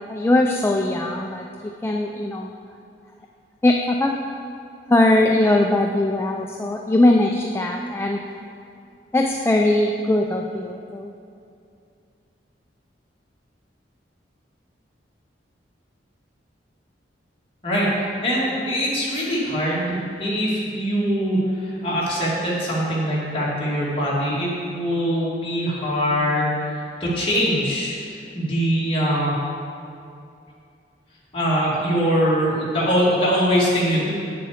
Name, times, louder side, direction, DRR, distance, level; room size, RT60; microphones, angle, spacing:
voice 1, 0.1-1.5 1.8-2.5 3.6-4.2 4.9-8.2 9.1-11.1, left 1 dB, 15° left, 1 dB, 0.4 m, -20 dB
voice 2, 18.2-28.0 28.3-29.4 31.3-34.1, equal, 30° left, -6 dB, 2.3 m, -22 dB
8.6 x 6.9 x 5.0 m, 2.5 s
head